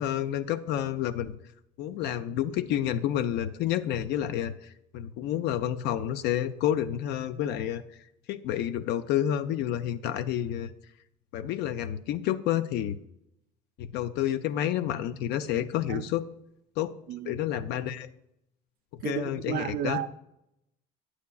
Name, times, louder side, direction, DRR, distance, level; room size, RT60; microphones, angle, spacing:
voice 1, 0.0-1.4 1.8-4.5 4.9-7.8 8.3-10.7 11.3-13.0 13.8-16.2 16.8-16.9 17.3-18.1 19.0-20.0, left 11 dB, 70° left, 0.5 m, -29 dB
voice 2, 19.0-20.2, right 11 dB, 55° right, 0.4 m, -33 dB
8.6 x 7.1 x 2.3 m
supercardioid pair, 85°, 18 cm